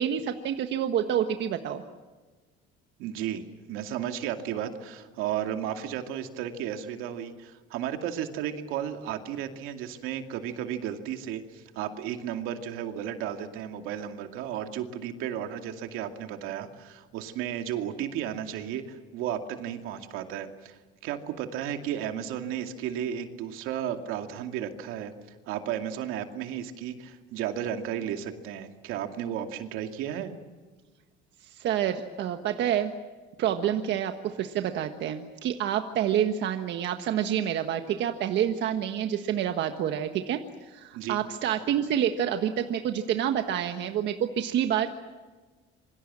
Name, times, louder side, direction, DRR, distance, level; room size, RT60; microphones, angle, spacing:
voice 1, 0.0-1.8 31.4-32.9 33.4-44.9, right 10 dB, 60° right, 6 dB, 1.5 m, -28 dB
voice 2, 3.0-25.1 25.5-30.3 40.9-41.2, right 10 dB, 80° right, 5 dB, 2.5 m, -34 dB
27.0 x 24.5 x 7.6 m, 1.3 s
cardioid pair, 130°, 21 cm